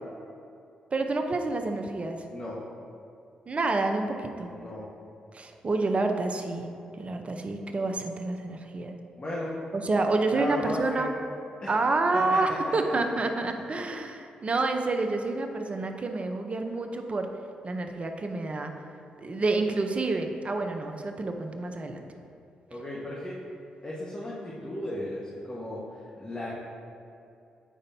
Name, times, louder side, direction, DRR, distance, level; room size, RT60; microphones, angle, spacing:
voice 1, 0.9-2.2 3.5-4.5 5.3-6.7 6.9-8.9 9.7-11.1 11.7-17.3 17.6-18.7 19.2-22.0, right 3 dB, 40° right, 5 dB, 0.7 m, -28 dB
voice 2, 2.3-2.6 4.5-4.9 9.2-9.6 10.3-11.1 11.6-11.7 12.1-13.1 13.4-13.5 22.7-23.4 23.8-26.5, left 1 dB, 30° left, -6 dB, 1.4 m, -35 dB
8.6 x 5.2 x 2.8 m, 2.6 s
hypercardioid pair, 45°, 3 cm